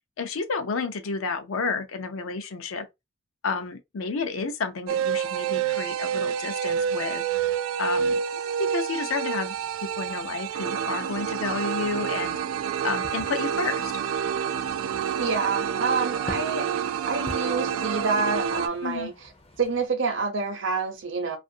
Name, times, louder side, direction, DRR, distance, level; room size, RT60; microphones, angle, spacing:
voice 1, 0.2-2.9 3.4-7.2 7.8-9.5 10.0-12.4 12.8-13.9 18.8-19.1, left 4 dB, 75° left, 0.5 m, -31 dB
sound 1, 4.9-18.7, right 8 dB, 85° right, 0.3 m, -28 dB
sound 2, 9.4-19.9, left 1 dB, 25° left, 0.5 m, -46 dB
voice 2, 15.2-19.3 19.6-21.4, right 4 dB, 65° right, 0.7 m, -28 dB
2.5 x 2.4 x 2.6 m
head